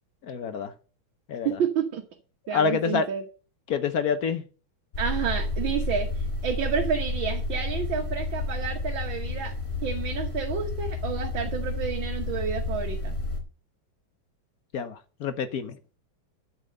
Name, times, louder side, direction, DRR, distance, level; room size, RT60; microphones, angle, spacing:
voice 1, 0.3-0.7 1.3-1.5 2.5-3.1 3.7-4.4 14.7-15.8, left 6 dB, 60° left, 9 dB, 1.1 m, -27 dB
voice 2, 1.4-2.0 2.5-3.2 5.0-9.5 9.8-13.2, right 7 dB, 70° right, 2 dB, 2.0 m, -30 dB
sound 1, 4.9-13.4, left 2 dB, 35° left, 3.1 m, -30 dB
12.0 x 4.4 x 7.7 m, 0.38 s
omnidirectional pair, 2.2 m